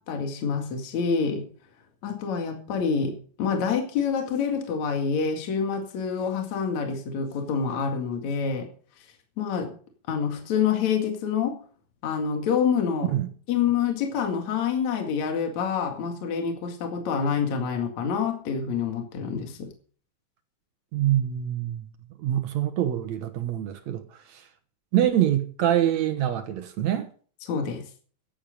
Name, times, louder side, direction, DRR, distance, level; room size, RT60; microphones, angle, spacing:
voice 1, 0.1-1.5 2.0-8.7 9.4-9.7 10.1-11.6 12.0-13.1 13.5-19.7 27.5-27.9, left 6 dB, 55° left, 3.2 m, -27 dB
voice 2, 20.9-21.9 22.2-24.0 24.3-24.4 24.9-27.1, right 11 dB, 65° right, 2.0 m, -25 dB
15.0 x 10.5 x 5.3 m
omnidirectional pair, 4.2 m